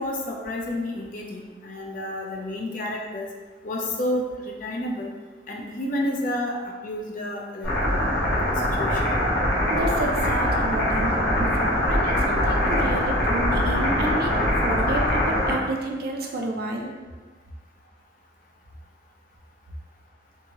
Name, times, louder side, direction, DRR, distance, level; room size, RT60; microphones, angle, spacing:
voice 1, 0.0-3.3 3.6-5.1 5.5-6.6 6.8-8.0 8.8-9.0, left 1 dB, 50° left, -1 dB, 0.5 m, -30 dB
sound 1, 7.6-15.5, left 1 dB, 65° left, 1.0 m, -23 dB
voice 2, 9.7-16.9, right 1 dB, 60° right, 1 dB, 0.4 m, -30 dB
2.7 x 2.6 x 2.8 m, 1.3 s
head